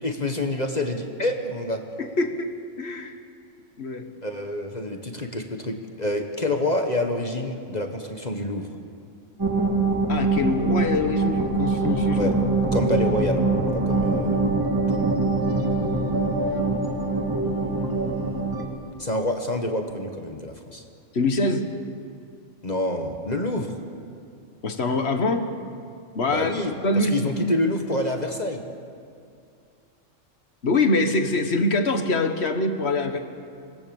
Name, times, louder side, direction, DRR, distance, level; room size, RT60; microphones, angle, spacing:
voice 1, 0.0-1.8 4.2-8.7 12.1-12.3 12.7-14.5 19.0-20.8 22.6-23.8 26.3-28.6, left 1 dB, 35° left, 4 dB, 1.5 m, -27 dB
voice 2, 2.0-2.5 2.8-3.1 3.8-4.1 10.1-12.3 21.1-21.7 24.6-25.5 26.1-26.5 26.8-27.5 30.6-33.2, left 2 dB, 55° left, 7 dB, 1.7 m, -24 dB
sound 1, 9.4-18.6, right 3 dB, 15° right, 2.4 m, -23 dB
25.5 x 19.5 x 7.1 m, 2.4 s
omnidirectional pair, 1.3 m